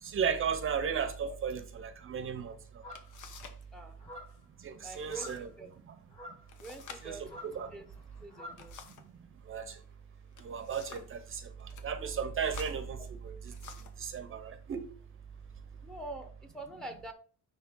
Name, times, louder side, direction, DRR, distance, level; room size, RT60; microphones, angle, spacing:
voice 1, 0.0-2.8 4.6-5.5 5.9-6.0 7.0-7.7 9.5-9.8 10.4-13.4 14.0-14.9, right 7 dB, 40° right, 0.7 m, -35 dB
sound 1, 2.4-2.5 2.9-3.7 3.9-4.4 4.9-5.4 5.7-5.8 6.5-9.2 10.1-11.2 11.6-11.9 12.4-14.0 14.8-15.0 15.5-16.0, left 6 dB, 70° left, 1.1 m, -51 dB
sound 2, 2.8-3.3 4.0-4.4 5.1-5.5 6.1-6.5 7.2-8.7, left 1 dB, 20° left, 3.1 m, -48 dB
voice 2, 4.8-5.7 6.6-7.9 8.2-8.7 15.8-17.1, right 2 dB, ahead, 0.8 m, -46 dB
10.0 x 3.4 x 3.7 m
cardioid pair, 155°, 31 cm